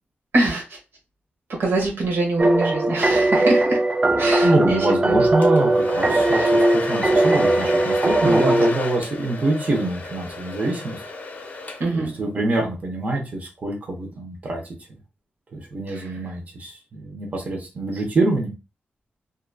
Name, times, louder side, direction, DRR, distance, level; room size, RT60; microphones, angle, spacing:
voice 1, 0.3-0.8 1.6-3.8 4.2-5.2 6.3-6.5 8.2-8.5 11.8-12.1 15.9-16.2, right 2 dB, 70° right, -1 dB, 0.9 m, -24 dB
sound 1, 2.4-8.7, right 1 dB, 25° right, 0.3 m, -19 dB
voice 2, 4.4-11.0 11.9-14.6 15.5-18.5, right 2 dB, 40° right, 0 dB, 0.9 m, -25 dB
Domestic sounds home sounds, 5.4-12.1, left 3 dB, 45° left, 0.6 m, -32 dB
2.8 x 2.4 x 2.2 m, 0.28 s
cardioid pair, 90°, 4 cm